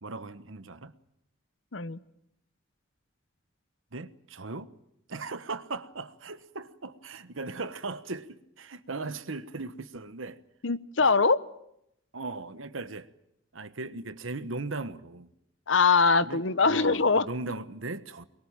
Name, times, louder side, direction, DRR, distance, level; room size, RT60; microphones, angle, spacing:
voice 1, 0.0-1.0 3.9-4.7 5.1-10.4 11.0-11.1 12.1-13.1 13.5-15.3 16.2-18.2, right 3 dB, 75° right, 1.3 m, -38 dB
voice 2, 10.6-11.4 15.7-17.2, left 4 dB, 65° left, 1.0 m, -22 dB
24.0 x 22.5 x 8.9 m
head